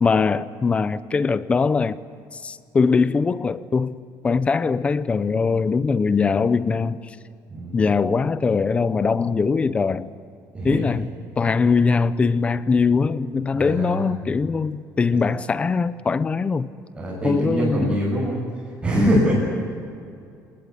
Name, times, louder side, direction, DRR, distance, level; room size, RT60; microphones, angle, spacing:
voice 1, 0.0-2.0 2.3-4.0 4.2-7.0 7.7-10.1 10.6-11.1 11.4-16.7 17.2-18.0 18.9-19.4, left 5 dB, 20° left, 0.8 m, -21 dB
voice 2, 7.5-7.8 10.5-10.9 13.6-14.0 16.9-18.4 18.8-19.4, right 1 dB, 20° right, 7.4 m, -23 dB
28.5 x 20.5 x 9.8 m
cardioid pair, 175°, 7 cm